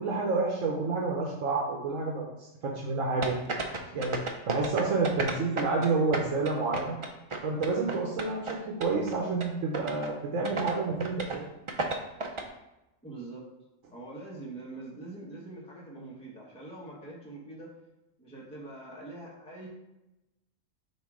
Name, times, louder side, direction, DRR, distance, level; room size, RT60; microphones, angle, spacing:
voice 1, 0.0-2.2 2.6-3.3 3.9-4.2 4.5-7.0 7.4-11.4, right 3 dB, 75° right, -2 dB, 1.3 m, -29 dB
sound 1, 3.2-5.9 6.1-8.5 8.8-9.1 9.4-9.5 9.7-10.1 10.4-10.7 11.0-11.4 11.7-12.4, right 3 dB, 40° right, 0.4 m, -32 dB
voice 2, 13.0-13.4 13.9-17.7 18.2-19.7, right 2 dB, 5° left, -4 dB, 1.1 m, -44 dB
7.5 x 2.8 x 4.8 m, 0.95 s
omnidirectional pair, 1.4 m